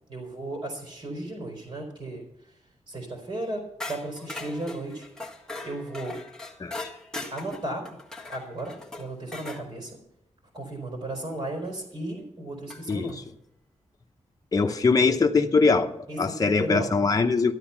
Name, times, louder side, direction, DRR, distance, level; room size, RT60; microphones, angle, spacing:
voice 1, 0.1-2.2 2.9-5.1 5.6-6.2 7.3-7.8 8.3-10.0 10.5-13.2 16.1-16.9, right 1 dB, 50° right, 4.3 m, -35 dB
sound 1, 3.8-9.6 11.6-11.7 12.7-13.1, left 2 dB, 5° left, 1.6 m, -39 dB
voice 2, 12.9-13.2 14.5-17.5, left 4 dB, 30° left, 0.8 m, -22 dB
13.0 x 11.0 x 5.8 m
wide cardioid pair, 145°, 12 cm